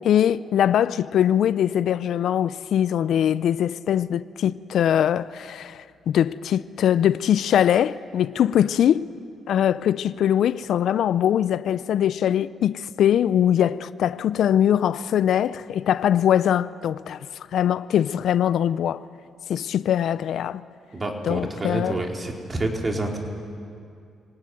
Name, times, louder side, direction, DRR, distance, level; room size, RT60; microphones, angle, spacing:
voice 1, 0.0-9.1 9.5-17.2 17.5-19.1 19.5-20.6 21.2-22.0, left 10 dB, 70° left, 0.5 m, -22 dB
voice 2, 20.9-23.2, right 2 dB, 30° right, 4.2 m, -28 dB
24.0 x 18.0 x 9.4 m
supercardioid pair, 55°, 0 cm